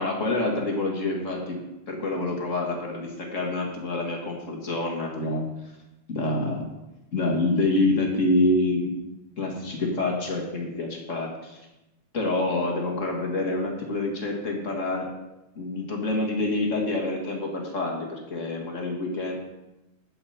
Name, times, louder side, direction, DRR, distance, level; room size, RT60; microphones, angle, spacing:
voice 1, 0.0-1.6 1.9-5.5 6.1-6.6 7.1-8.9 9.4-11.6 12.1-15.1 15.5-19.4, left 2 dB, 35° left, 0 dB, 1.4 m, -27 dB
12.0 x 8.1 x 4.2 m, 0.98 s
omnidirectional pair, 3.5 m